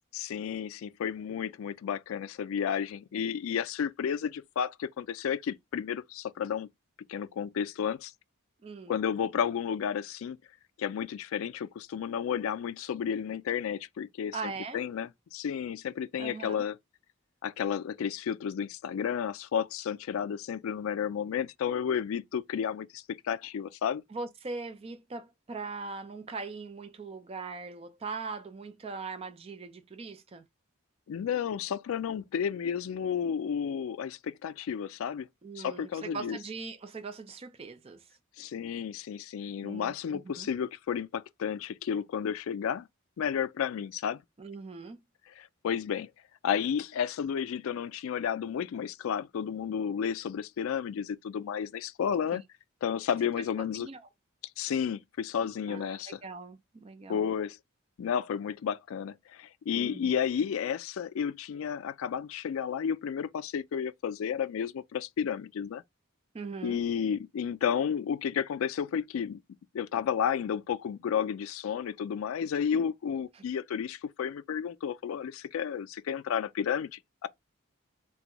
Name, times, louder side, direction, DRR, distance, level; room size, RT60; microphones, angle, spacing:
voice 1, 0.1-6.7 7.1-8.1 8.9-10.4 10.8-16.8 17.4-24.0 31.1-35.3 35.6-36.4 38.4-42.9 43.2-44.2 45.3-46.1 46.4-52.4 52.8-53.9 54.6-56.2 57.1-57.6 58.0-65.8 66.6-69.4 69.7-77.3, left 8 dB, 70° left, 0.3 m, -32 dB
voice 2, 8.6-8.9 14.3-14.8 16.2-16.6 24.1-30.4 35.4-38.0 39.6-40.5 44.4-45.0 52.3-52.4 53.8-54.1 55.7-57.2 59.8-60.1 66.3-66.8, right 4 dB, 25° right, 0.3 m, -40 dB
3.3 x 2.2 x 2.9 m
head